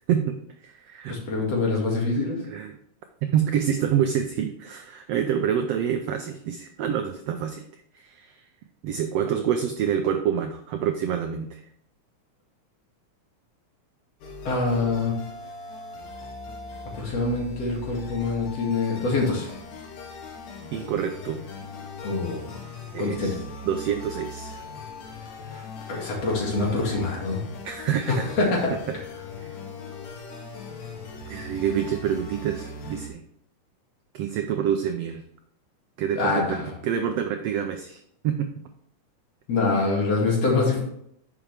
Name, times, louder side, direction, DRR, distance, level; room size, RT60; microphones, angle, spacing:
voice 1, 0.0-1.2 2.4-2.8 3.2-7.6 7.9-8.4 8.8-11.6 20.7-21.4 22.9-24.6 27.6-28.3 28.9-29.0 29.4-29.5 31.3-33.2 34.1-35.2 36.0-38.0 38.2-38.6, right 8 dB, 85° right, 6 dB, 1.4 m, -27 dB
voice 2, 1.1-2.4 14.4-15.1 17.0-19.5 22.0-22.6 23.0-23.3 25.5-25.6 25.9-27.4 28.4-28.5 36.2-36.7 39.5-40.8, left 3 dB, 55° left, -2 dB, 3.1 m, -25 dB
sound 1, 14.2-33.1, left 3 dB, 85° left, 3.0 m, -40 dB
10.0 x 6.1 x 3.4 m, 0.71 s
omnidirectional pair, 3.6 m